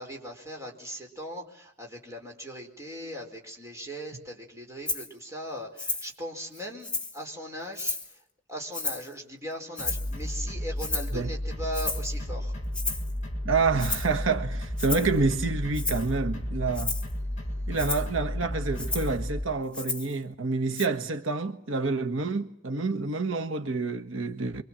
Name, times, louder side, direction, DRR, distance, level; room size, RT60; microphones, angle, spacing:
voice 1, 0.0-8.2 8.5-12.5 17.4-17.8, equal, 15° right, 4.7 m, -39 dB
Rattle (instrument), 4.9-5.1 5.8-6.1 6.5-7.2 7.7-8.1 8.7-9.1 9.8-10.2 10.8-11.2 11.7-12.1 12.7-13.1 13.8-14.1 14.8-15.2 15.7-16.1 16.7-17.1 17.8-18.1 18.8-19.1 19.7-20.2 20.8-20.9, left 3 dB, 5° left, 1.6 m, -33 dB
sound 1, 9.8-19.4, left 1 dB, 40° left, 7.0 m, -33 dB
voice 2, 13.4-17.0 17.7-24.6, right 4 dB, 80° right, 1.4 m, -28 dB
28.0 x 24.5 x 7.5 m
head